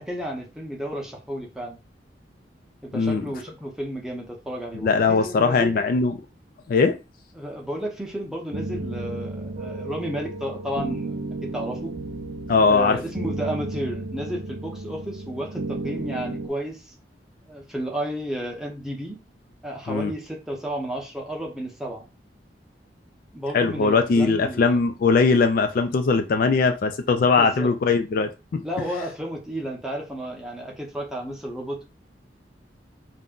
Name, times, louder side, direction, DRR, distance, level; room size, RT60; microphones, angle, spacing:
voice 1, 0.0-1.8 2.8-5.8 7.3-11.9 12.7-16.9 17.5-19.2 19.6-22.1 23.3-24.8 27.2-27.7 28.6-31.9, equal, 5° right, 0.7 m, -32 dB
voice 2, 2.9-3.2 4.8-6.2 6.7-7.0 12.5-13.0 19.9-20.1 23.5-28.6, left 4 dB, 55° left, 0.3 m, -20 dB
sound 1, 8.5-16.5, right 2 dB, 50° right, 0.4 m, -33 dB
2.6 x 2.1 x 3.5 m
head